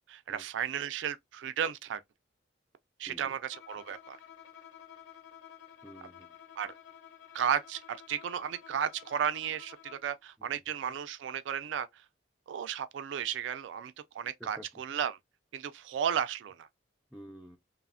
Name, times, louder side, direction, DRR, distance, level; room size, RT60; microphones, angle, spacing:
voice 1, 0.1-2.0 3.0-3.4 3.7-4.2 6.6-6.7 7.3-11.9 12.5-15.2 15.5-16.7, right 8 dB, 80° right, 0.3 m, -34 dB
voice 2, 3.0-3.4 5.8-6.4 10.4-11.0 14.4-14.8 17.1-17.6, equal, ahead, 0.3 m, -51 dB
Bowed string instrument, 3.5-10.2, left 9 dB, 75° left, 0.5 m, -53 dB
3.2 x 2.0 x 2.4 m
head